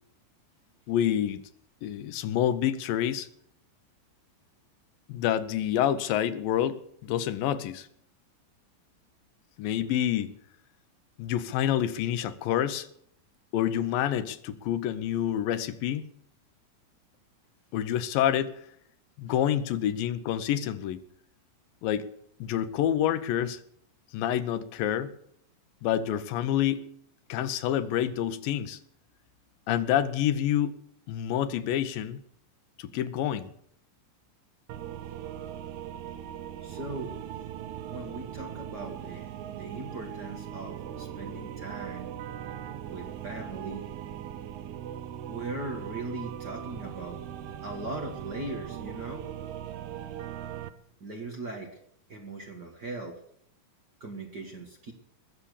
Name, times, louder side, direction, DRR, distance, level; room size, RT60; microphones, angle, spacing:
voice 1, 0.9-1.4 1.8-3.3 5.1-7.9 9.6-10.3 11.2-12.9 13.5-16.1 17.7-18.6 19.2-21.0 21.8-22.1 22.4-23.6 24.1-25.1 25.8-26.8 27.3-28.8 29.7-30.8 31.1-32.2 32.8-33.5, left 10 dB, 80° left, 13 dB, 2.5 m, -28 dB
sound 1, 34.7-50.7, right 10 dB, 70° right, 1.9 m, -39 dB
voice 2, 36.6-37.1 37.9-42.1 42.9-43.9 45.3-47.2 47.6-49.3 51.0-51.8 52.1-53.2 54.0-54.9, right 2 dB, 40° right, 2 dB, 1.7 m, -39 dB
20.5 x 7.2 x 8.3 m, 0.68 s
omnidirectional pair, 4.1 m